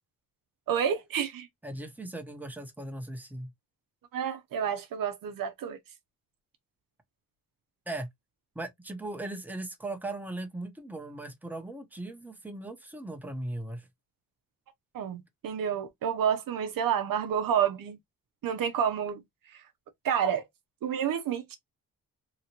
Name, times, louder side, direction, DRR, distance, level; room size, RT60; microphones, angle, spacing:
voice 1, 0.7-1.5 4.1-5.8 14.9-18.0 18.4-19.2 20.0-20.4 20.8-21.6, right 8 dB, 75° right, 0.7 m, -29 dB
voice 2, 1.6-3.5 7.9-8.1 8.5-13.9, right 2 dB, 5° right, 0.9 m, -38 dB
3.0 x 2.6 x 2.9 m
cardioid pair, 85°, 34 cm